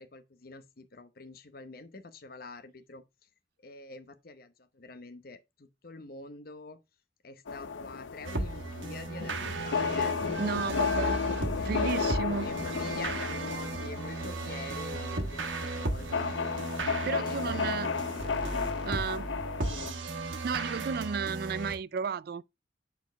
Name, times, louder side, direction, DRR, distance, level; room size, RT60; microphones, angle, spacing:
voice 1, 0.0-3.0 3.6-6.8 7.2-10.2 10.6-10.7 11.0-11.9 12.4-16.3 17.1-18.6 19.6-20.1, left 3 dB, 50° left, 0.8 m, -46 dB
sound 1, 7.5-19.9, left 5 dB, 85° left, 0.6 m, -34 dB
sound 2, 8.2-21.7, right 2 dB, 85° right, 1.3 m, -35 dB
voice 2, 10.4-11.2 11.7-12.5 17.0-17.9 18.9-19.3 20.4-22.4, right 5 dB, 55° right, 0.3 m, -33 dB
8.2 x 4.6 x 3.3 m
head